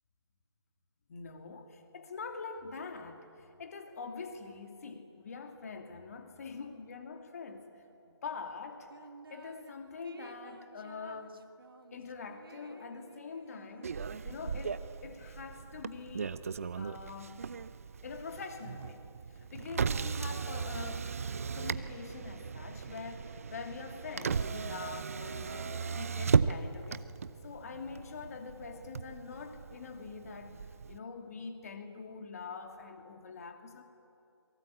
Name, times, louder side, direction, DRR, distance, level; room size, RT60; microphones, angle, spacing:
voice 1, 1.1-7.7 8.0-8.9 9.3-11.4 11.9-13.9 14.2-16.4 16.8-17.5 18.0-21.1 21.5-27.1 27.4-30.6 30.9-33.8, left 5 dB, 35° left, 6 dB, 2.6 m, -44 dB
sound 1, 8.9-9.7 10.0-14.7, right 3 dB, 50° right, 1.6 m, -54 dB
Motor vehicle (road), 13.8-31.0, right 6 dB, 30° right, 0.6 m, -36 dB
28.0 x 23.0 x 8.5 m, 2.6 s
figure-of-eight pair, 160°, 15 cm